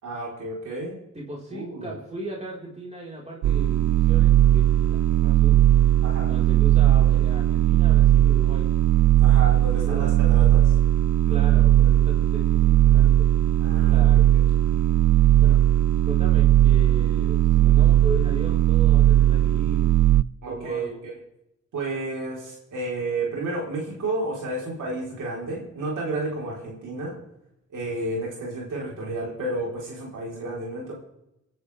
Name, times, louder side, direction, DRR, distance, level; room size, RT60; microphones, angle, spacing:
voice 1, 0.0-0.9 1.5-1.9 6.0-6.3 9.2-10.6 11.3-11.4 13.6-14.2 20.4-21.1 21.7-27.2 27.7-30.9, right 2 dB, 90° right, -3 dB, 4.2 m, -31 dB
voice 2, 1.1-5.6 6.3-8.7 9.7-10.3 11.3-13.3 13.8-14.2 15.4-15.6 16.0-20.0 20.4-21.0, right 1 dB, 20° right, -3 dB, 4.5 m, -37 dB
sound 1, 3.4-20.2, right 13 dB, 75° right, 0.5 m, -18 dB
24.5 x 11.0 x 3.5 m, 0.87 s
cardioid pair, 45°, 30 cm